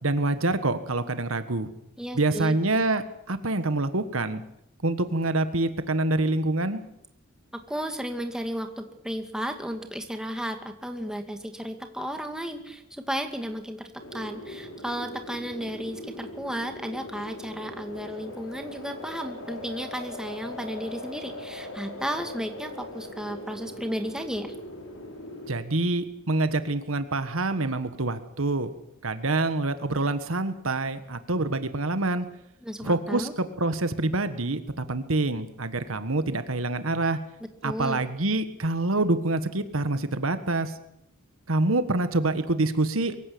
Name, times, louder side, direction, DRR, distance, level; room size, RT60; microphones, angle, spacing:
voice 1, 0.0-1.7 2.1-4.4 4.8-6.8 25.5-28.7 29.0-32.2 32.8-37.2 37.6-40.7 41.5-43.1, right 2 dB, 75° right, 11 dB, 1.5 m, -26 dB
voice 2, 2.0-2.5 7.5-24.5 32.6-33.3 37.6-38.0, equal, 5° right, 5 dB, 2.1 m, -34 dB
sound 1, 14.0-25.5, left 1 dB, 80° left, 6.2 m, -40 dB
23.0 x 15.5 x 8.6 m, 0.78 s
head